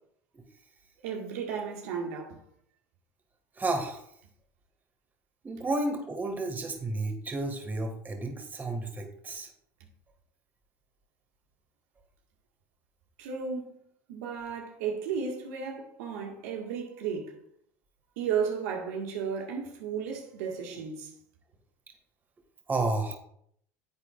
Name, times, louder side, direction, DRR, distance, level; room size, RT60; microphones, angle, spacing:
voice 1, 1.0-2.4 13.2-13.8 14.1-17.3 18.2-21.1, right 6 dB, 75° right, 1.7 m, -34 dB
voice 2, 3.6-4.0 5.4-9.5 22.7-23.2, right 2 dB, 20° right, 1.8 m, -31 dB
10.0 x 8.3 x 2.5 m
hypercardioid pair, 90°, 8 cm